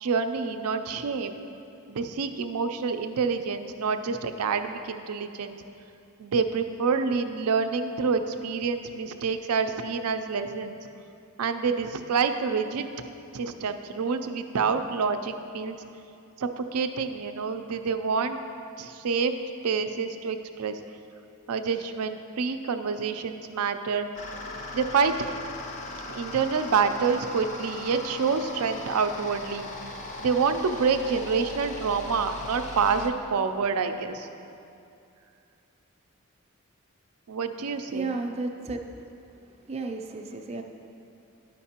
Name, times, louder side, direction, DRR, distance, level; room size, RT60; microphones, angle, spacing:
voice 1, 0.0-1.4 1.9-5.6 6.2-10.8 11.4-12.9 13.3-15.8 16.4-18.4 18.8-19.3 19.6-20.8 21.5-24.1 24.7-25.2 26.1-29.7 30.2-34.3 37.3-38.1, right 5 dB, 85° right, 8 dB, 0.4 m, -27 dB
sound 1, 24.1-33.1, left 2 dB, 35° left, 0.5 m, -39 dB
voice 2, 37.9-38.8 39.7-40.6, right 3 dB, 30° right, 4 dB, 0.4 m, -32 dB
11.5 x 5.2 x 2.9 m, 2.6 s
head